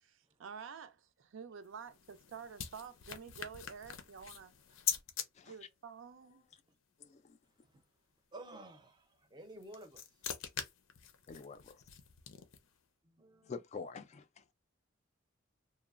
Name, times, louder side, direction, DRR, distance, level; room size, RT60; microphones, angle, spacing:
voice 1, 0.0-4.5 5.5-6.4, right 6 dB, 75° right, 0.4 m, -49 dB
sound 1, 1.6-5.3 9.4-12.8, left 9 dB, 90° left, 0.5 m, -43 dB
voice 2, 5.3-5.7 7.0-7.4 11.3-11.8 13.4-14.4, left 5 dB, 35° left, 0.3 m, -47 dB
voice 3, 8.3-10.3 13.0-13.5, right 1 dB, 20° right, 0.5 m, -52 dB
2.9 x 2.0 x 2.4 m
head